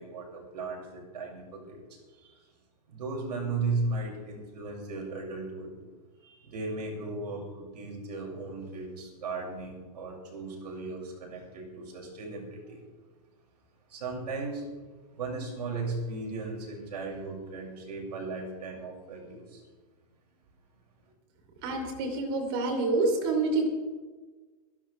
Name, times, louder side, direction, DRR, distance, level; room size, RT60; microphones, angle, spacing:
voice 1, 0.0-2.4 2.9-5.7 6.2-12.8 13.9-14.8 15.1-19.6, right 3 dB, 85° right, -1 dB, 6.0 m, -36 dB
voice 2, 21.6-23.7, right 3 dB, 35° right, 4 dB, 3.1 m, -27 dB
24.0 x 12.0 x 3.3 m, 1.3 s
supercardioid pair, 170°, 20 cm